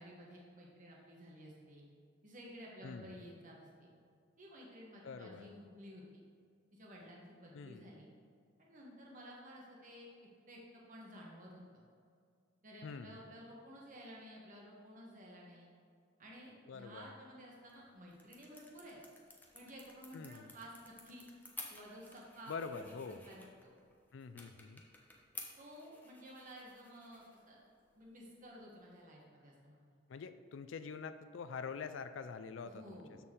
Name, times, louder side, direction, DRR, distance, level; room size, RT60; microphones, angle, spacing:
voice 1, 0.0-1.8 2.2-3.9 4.4-6.2 6.7-8.0 8.6-10.1 10.5-11.6 12.6-15.7 16.2-19.0 19.5-21.2 21.7-22.9 23.2-23.7 25.6-27.6 27.9-29.9 32.6-33.2, equal, 45° right, -3 dB, 1.3 m, -53 dB
voice 2, 2.8-3.1 5.0-5.5 7.5-7.9 12.8-13.2 16.7-17.1 20.1-20.5 22.5-23.2 24.1-24.8 30.1-33.0, left 5 dB, 75° left, 11 dB, 0.4 m, -45 dB
sound 1, 17.5-29.1, left 2 dB, 10° left, 1.0 m, -55 dB
13.0 x 4.4 x 3.7 m, 2.2 s
head